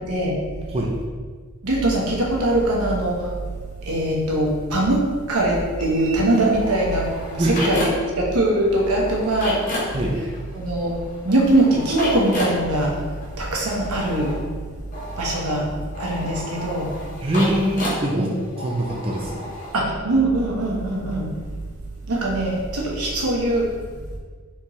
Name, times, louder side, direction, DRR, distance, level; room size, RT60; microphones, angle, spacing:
voice 1, 1.6-3.3 3.9-7.1 7.3-7.8 8.2-9.6 10.5-10.9 11.2-12.9 13.4-14.3 15.2-15.7 16.0-16.9 18.1-18.4 19.7-21.3 22.1-23.7, right 1 dB, 85° right, -2 dB, 1.0 m, -21 dB
sound 1, 5.8-8.2 8.5-19.8, left 1 dB, 35° left, 1.1 m, -33 dB
voice 2, 9.8-10.1 17.2-18.3 18.6-19.4, right 1 dB, 25° right, -2 dB, 0.4 m, -23 dB
4.3 x 3.6 x 3.1 m, 1.5 s
head